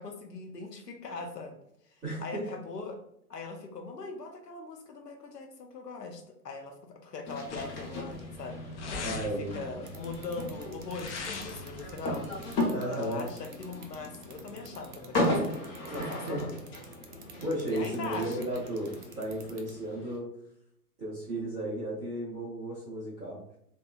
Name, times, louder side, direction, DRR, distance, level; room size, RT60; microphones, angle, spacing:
voice 1, 0.0-1.6 1.9-3.0 3.3-8.6 9.5-12.2 12.9-15.7 15.9-16.5 17.7-18.4, left 4 dB, 85° left, 3 dB, 0.7 m, -41 dB
voice 2, 2.0-2.5 9.0-9.8 12.7-13.3 15.9-16.6 17.4-20.3 21.0-23.4, right 1 dB, 10° right, -11 dB, 0.4 m, -34 dB
sound 1, 7.3-20.2, left 1 dB, 30° left, 0.8 m, -36 dB
sound 2, 7.5-12.5, left 3 dB, 50° left, 0.5 m, -42 dB
sound 3, 9.9-19.7, right 6 dB, 70° right, 0.7 m, -49 dB
2.8 x 2.3 x 2.3 m, 0.76 s
figure-of-eight pair, 115°, 47 cm